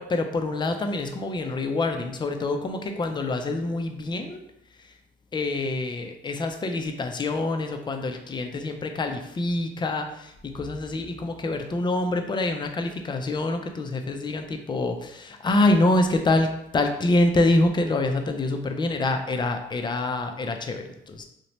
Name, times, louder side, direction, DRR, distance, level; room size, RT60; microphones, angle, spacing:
voice 1, 0.0-4.4 4.8-4.9 5.3-21.2, left 2 dB, 25° left, 5 dB, 0.3 m, -26 dB
2.7 x 2.1 x 3.0 m, 0.79 s
cardioid pair, 90°, 20 cm